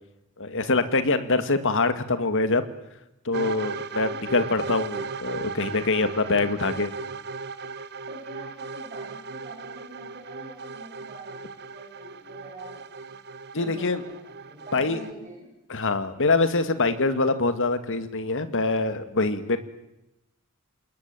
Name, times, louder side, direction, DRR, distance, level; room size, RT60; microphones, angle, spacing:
voice 1, 0.4-2.7 3.3-6.9 13.5-14.0 14.7-15.0 15.7-19.6, left 3 dB, 60° left, 10 dB, 2.1 m, -24 dB
sound 1, 3.3-15.1, right 4 dB, 50° right, 1.0 m, -37 dB
voice 2, 5.6-6.6 8.1-13.0 13.6-15.5, right 1 dB, 35° right, -1 dB, 7.7 m, -45 dB
28.0 x 20.5 x 9.1 m, 0.91 s
head